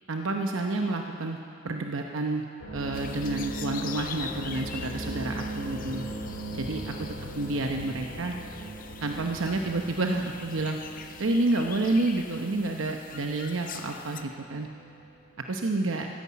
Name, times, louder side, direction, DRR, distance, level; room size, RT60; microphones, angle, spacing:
voice 1, 0.1-1.4 1.6-2.4 2.7-6.1 6.5-7.1 7.3-8.3 9.0-10.8 11.2-14.7 15.5-16.1, right 2 dB, 75° right, 3 dB, 0.9 m, -29 dB
sound 1, 2.6-14.7 15.0-15.4, right 2 dB, 80° left, 3.2 m, -39 dB
sound 2, 2.9-14.2, left 7 dB, 45° left, 0.6 m, -44 dB
14.0 x 11.5 x 8.5 m, 2.5 s
head